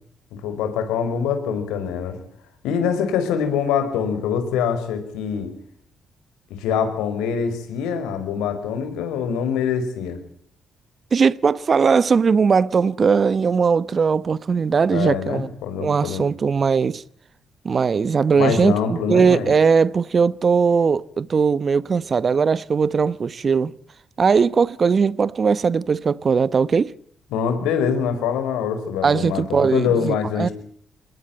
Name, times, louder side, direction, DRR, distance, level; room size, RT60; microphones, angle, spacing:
voice 1, 0.3-2.2 2.6-5.5 6.6-10.2 14.9-16.2 18.4-19.5 27.3-30.5, left 7 dB, 90° left, 5.1 m, -24 dB
voice 2, 11.1-15.5 15.8-17.0 17.6-23.7 24.2-26.9 29.0-30.5, right 5 dB, 45° right, 0.9 m, -19 dB
22.0 x 20.5 x 8.8 m
supercardioid pair, 65°, 0 cm